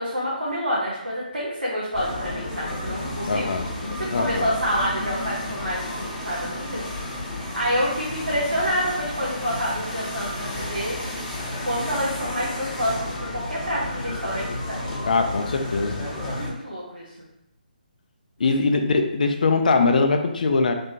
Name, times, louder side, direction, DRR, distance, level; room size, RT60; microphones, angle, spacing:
voice 1, 0.0-3.5 4.0-11.0 11.6-15.2 16.3-17.0, equal, 90° right, -7 dB, 1.0 m, -28 dB
sound 1, 1.9-16.5, left 1 dB, 15° left, 1.3 m, -32 dB
voice 2, 3.3-3.7 4.1-4.5 15.1-16.1 18.4-20.7, left 3 dB, 60° left, 5 dB, 0.4 m, -21 dB
3.6 x 3.3 x 2.7 m, 0.83 s
figure-of-eight pair, 145°, 5 cm